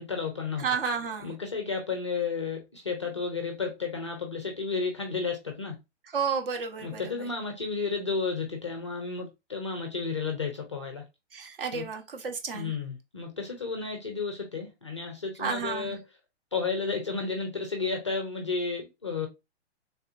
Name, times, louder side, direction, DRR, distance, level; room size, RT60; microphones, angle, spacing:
voice 1, 0.0-0.6 1.2-5.8 6.8-11.0 11.7-11.8 12.5-16.0 16.5-19.3, left 4 dB, 25° left, 0.4 m, -32 dB
voice 2, 0.6-1.3 6.1-7.3 11.3-12.7 15.4-15.9, right 6 dB, 50° right, 0.9 m, -31 dB
3.4 x 2.8 x 2.4 m
hypercardioid pair, 165°, 35 cm